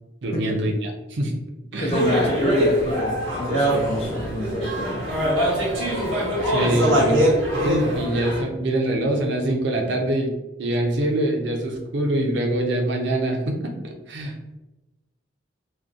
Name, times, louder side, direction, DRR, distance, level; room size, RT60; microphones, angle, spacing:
voice 1, 0.2-1.4 1.7-2.0 6.4-7.3 7.6-10.3 10.6-14.3, right 1 dB, 60° right, 2 dB, 0.4 m, -24 dB
voice 2, 1.8-5.1, left 1 dB, 30° left, 1 dB, 0.4 m, -27 dB
sound 1, 1.9-8.4, equal, 85° right, 0.8 m, -22 dB
2.6 x 2.1 x 2.4 m, 1.0 s
head